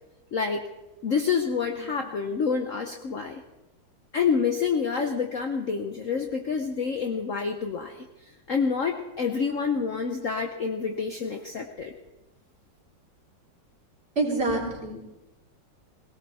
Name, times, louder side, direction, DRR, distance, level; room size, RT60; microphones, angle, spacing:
voice 1, 0.3-0.7 1.0-3.4 4.1-8.0 8.5-11.9, left 5 dB, 55° left, 4 dB, 1.0 m, -27 dB
voice 2, 14.2-15.0, right 2 dB, 30° right, -5 dB, 3.7 m, -26 dB
18.5 x 18.0 x 4.2 m, 1.0 s
omnidirectional pair, 2.1 m